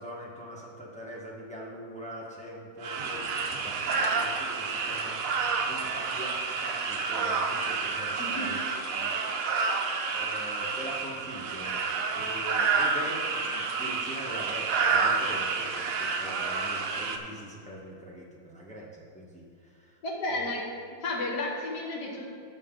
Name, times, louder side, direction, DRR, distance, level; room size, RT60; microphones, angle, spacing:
voice 1, 0.0-5.4 5.7-9.3 10.1-20.0 20.3-20.5, equal, 5° left, -4 dB, 0.7 m, -43 dB
sound 1, 2.8-17.2, right 4 dB, 80° right, 0.7 m, -29 dB
voice 2, 20.0-20.7 21.0-22.3, left 2 dB, 55° left, -2 dB, 1.8 m, -32 dB
12.0 x 6.3 x 3.8 m, 2.5 s
omnidirectional pair, 2.4 m